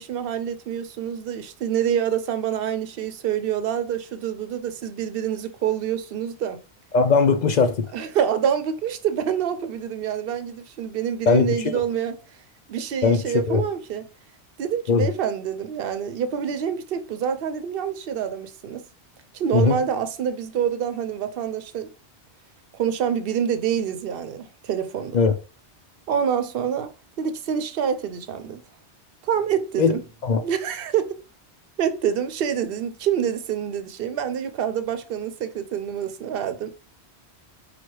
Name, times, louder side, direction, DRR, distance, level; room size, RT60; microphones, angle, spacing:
voice 1, 0.0-6.6 7.9-12.1 12.7-14.0 14.6-18.8 19.3-21.9 22.7-25.2 26.1-26.9 27.2-28.6 29.2-30.0 30.4-31.2 31.8-36.7, right 8 dB, 65° right, 0.8 m, -26 dB
voice 2, 6.9-7.9 11.3-11.7 13.0-13.2 13.5-13.6 14.9-15.1 19.5-19.8 25.1-25.3 29.8-29.9 30.2-30.4, left 5 dB, 55° left, 0.5 m, -19 dB
4.6 x 2.3 x 4.5 m
omnidirectional pair, 1.1 m